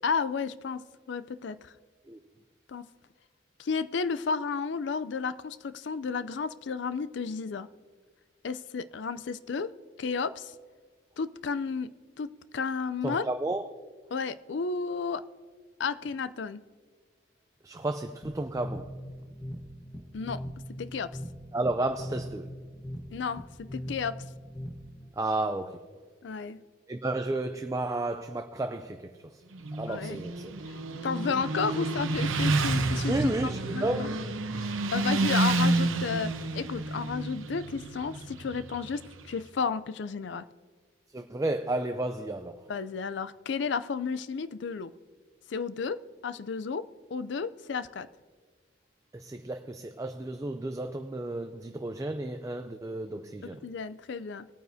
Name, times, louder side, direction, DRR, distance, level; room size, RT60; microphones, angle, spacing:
voice 1, 0.0-1.7 2.7-2.9 3.6-7.7 8.4-10.5 11.2-13.3 14.1-15.2 15.8-16.6 20.1-20.4 20.7-21.2 23.1-24.2 26.2-26.6 29.9-30.2 31.0-33.3 33.7-34.1 34.5-40.5 42.7-44.9 45.5-48.1 53.4-54.5, left 5 dB, 65° left, 0.4 m, -32 dB
voice 2, 13.0-13.7 17.6-18.9 21.5-22.5 25.2-25.9 26.9-29.4 29.8-30.5 33.1-34.2 41.1-42.5 49.1-53.6, right 2 dB, 15° right, 0.3 m, -32 dB
sound 1, 18.2-25.1, equal, 20° left, 1.2 m, -41 dB
Motorcycle, 29.5-39.3, right 2 dB, 90° right, 0.9 m, -30 dB
19.5 x 9.2 x 2.7 m
head